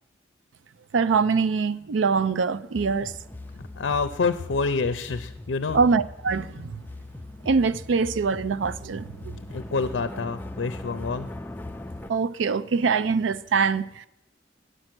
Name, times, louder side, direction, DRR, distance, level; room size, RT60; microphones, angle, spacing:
voice 1, 0.9-3.1 5.7-6.8 7.5-9.3 12.1-14.1, right 5 dB, 85° right, 0.4 m, -24 dB
sound 1, 2.7-12.1, left 2 dB, 10° left, 0.4 m, -40 dB
voice 2, 3.8-5.8 9.5-11.3, left 4 dB, 75° left, 0.5 m, -27 dB
9.9 x 7.6 x 6.0 m
head